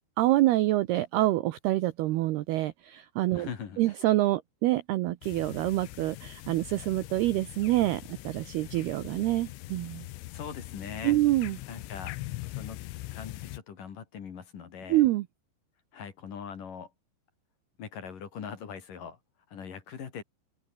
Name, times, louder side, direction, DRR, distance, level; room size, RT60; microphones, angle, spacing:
voice 1, 0.2-3.5 3.8-10.1 11.0-11.6 14.9-15.3, right 16 dB, 80° right, 2.4 m, -26 dB
voice 2, 3.3-3.8 10.3-11.2 11.7-12.2 12.4-12.8 13.1-15.0 15.9-16.9 17.8-19.2 19.5-20.2, left 7 dB, 50° left, 3.8 m, -41 dB
sound 1, 5.2-13.6, left 18 dB, 90° left, 3.6 m, -42 dB
open air
omnidirectional pair, 5.6 m